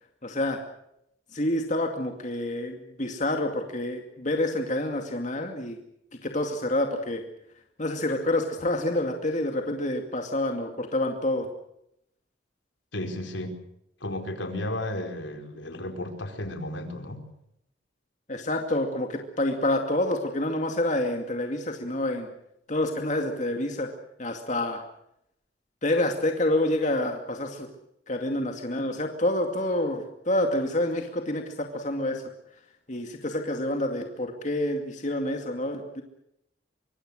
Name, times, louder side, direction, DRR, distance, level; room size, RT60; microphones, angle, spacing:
voice 1, 0.2-0.6 1.3-5.8 6.2-7.2 7.8-11.5 18.3-22.3 22.7-23.9 24.2-24.8 25.8-27.7 28.1-32.3 32.9-36.0, left 1 dB, 40° left, 4 dB, 2.4 m, -28 dB
voice 2, 12.9-13.6 14.0-17.3, left 1 dB, 75° left, 5 dB, 4.5 m, -33 dB
25.0 x 24.0 x 6.5 m, 0.78 s
head